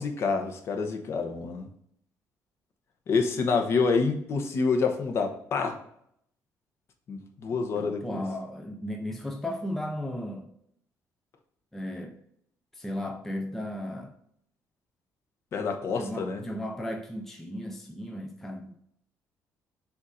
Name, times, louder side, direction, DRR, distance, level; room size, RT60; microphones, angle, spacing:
voice 1, 0.0-1.7 3.1-5.7 7.1-8.2 15.5-16.4, left 4 dB, 45° left, 0.9 m, -27 dB
voice 2, 7.8-10.5 11.7-12.2 12.7-14.1 15.9-18.8, left 1 dB, 5° left, 0.4 m, -35 dB
6.9 x 2.6 x 5.4 m
cardioid pair, 165°, 6 cm